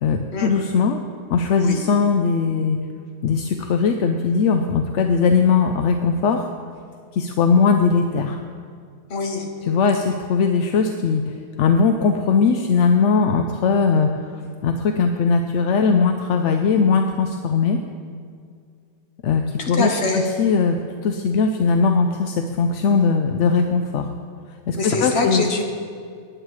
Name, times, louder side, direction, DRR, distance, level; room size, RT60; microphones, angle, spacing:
voice 1, 0.0-1.0 1.3-2.8 3.2-6.5 7.1-8.4 9.7-17.8 19.2-24.1 24.7-25.4, left 5 dB, 65° left, 5 dB, 0.8 m, -19 dB
voice 2, 9.1-9.5 19.6-20.3 24.8-25.6, left 2 dB, 50° left, 3 dB, 1.4 m, -23 dB
19.0 x 9.0 x 3.2 m, 2.2 s
omnidirectional pair, 1.5 m